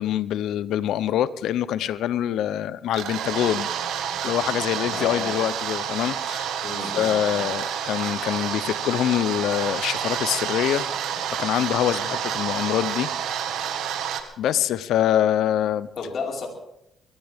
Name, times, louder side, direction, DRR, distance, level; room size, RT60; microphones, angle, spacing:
voice 1, 0.0-3.7 4.2-6.6 6.9-10.9 11.4-13.1 13.8-13.9 14.4-15.9, left 11 dB, 80° left, 17 dB, 0.7 m, -25 dB
sound 1, 2.9-14.2, right 8 dB, 85° right, 1.6 m, -29 dB
voice 2, 4.9-5.3 6.6-7.5 16.0-16.5, left 4 dB, 55° left, -1 dB, 4.8 m, -32 dB
22.5 x 15.5 x 3.6 m, 0.82 s
cardioid pair, 90°, 0 cm